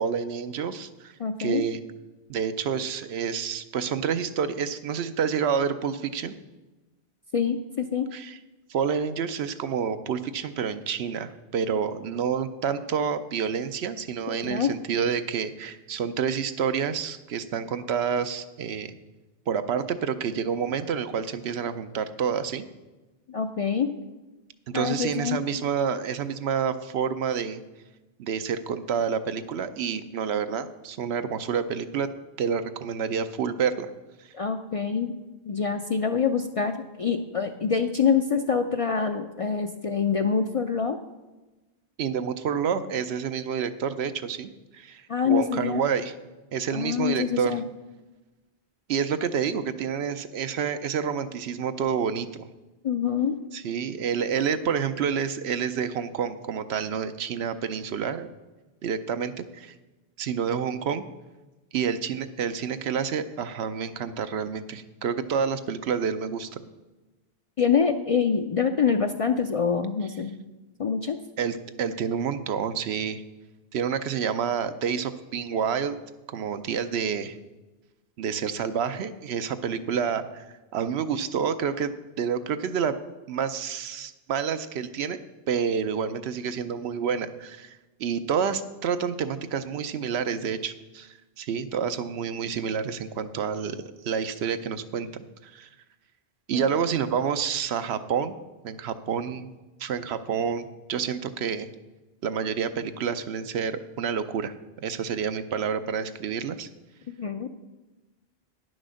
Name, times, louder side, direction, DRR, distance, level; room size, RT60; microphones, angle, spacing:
voice 1, 0.0-1.1 1.4-1.8 2.3-6.3 8.1-8.4 8.7-19.0 19.5-22.6 24.7-27.6 28.2-32.1 32.4-33.9 42.0-46.1 46.5-47.6 48.9-52.5 53.5-58.3 58.8-59.7 60.2-61.0 61.7-66.5 71.4-73.2 73.7-76.0 76.3-77.3 78.2-80.4 80.7-81.9 82.2-83.0 83.3-85.2 85.5-93.8 94.0-95.1 95.4-95.7 96.5-98.4 98.6-99.5 99.8-101.7 102.2-106.7, right 7 dB, 80° right, 11 dB, 0.9 m, -28 dB
voice 2, 1.2-1.6 7.3-8.1 14.3-14.7 23.3-23.9 24.7-25.4 34.3-35.1 35.5-41.0 45.1-45.8 46.7-47.6 52.8-53.3 67.6-70.3 70.8-71.2 96.5-96.7 107.1-107.5, left 6 dB, 50° left, 7 dB, 0.4 m, -25 dB
10.0 x 6.3 x 6.3 m, 1.1 s
omnidirectional pair, 1.1 m